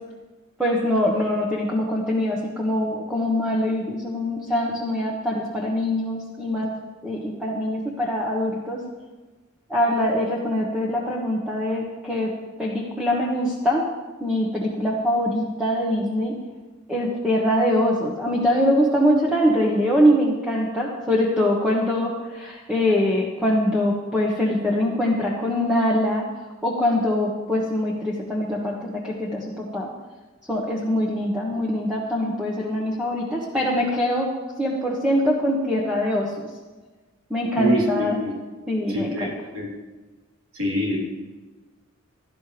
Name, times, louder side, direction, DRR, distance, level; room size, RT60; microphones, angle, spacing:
voice 1, 0.6-6.7 7.0-8.8 9.7-12.3 12.6-13.8 14.2-16.4 16.9-26.2 26.6-29.9 30.5-34.3 34.6-36.3 37.3-38.2 38.7-39.3, left 1 dB, 5° right, -4 dB, 1.3 m, -23 dB
voice 2, 37.6-38.3 38.9-39.7 40.5-41.0, equal, 70° right, -3 dB, 4.0 m, -25 dB
16.5 x 11.5 x 3.4 m, 1.2 s
head